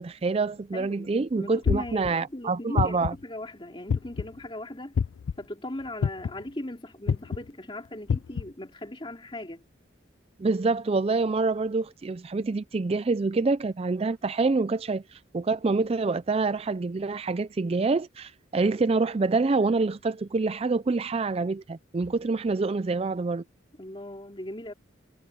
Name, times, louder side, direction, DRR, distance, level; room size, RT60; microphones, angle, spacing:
voice 1, 0.0-3.1 10.4-23.4, right 3 dB, 30° right, 0.4 m, -26 dB
voice 2, 0.7-4.9 5.4-9.6 23.8-24.7, left 1 dB, 25° left, 2.8 m, -39 dB
sound 1, 1.7-2.1 2.8-3.2 3.9-4.3 5.0-5.3 6.0-6.4 7.1-7.4 8.1-8.4, left 6 dB, 85° left, 0.4 m, -25 dB
head